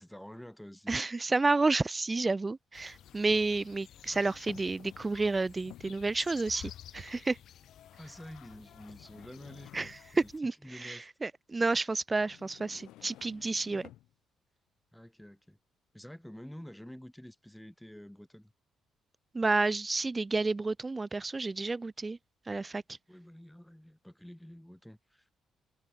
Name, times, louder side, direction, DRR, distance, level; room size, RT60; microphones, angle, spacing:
voice 1, 0.0-1.0 8.0-10.0 10.6-11.1 14.9-15.6 15.9-18.5 23.1-25.3, equal, 5° left, 6.2 m, -49 dB
voice 2, 0.9-7.4 9.7-13.9 19.3-22.2 22.5-23.0, right 3 dB, 25° right, 0.3 m, -30 dB
sound 1, 1.5-1.6 2.9-3.6 4.5-5.3 5.6-6.1 6.9-7.0 7.8-7.9 8.9-10.3 12.2-14.1, left 15 dB, 90° left, 2.2 m, -53 dB
sound 2, 2.7-10.4, left 11 dB, 70° left, 6.1 m, -52 dB
cardioid pair, 90°, 0 cm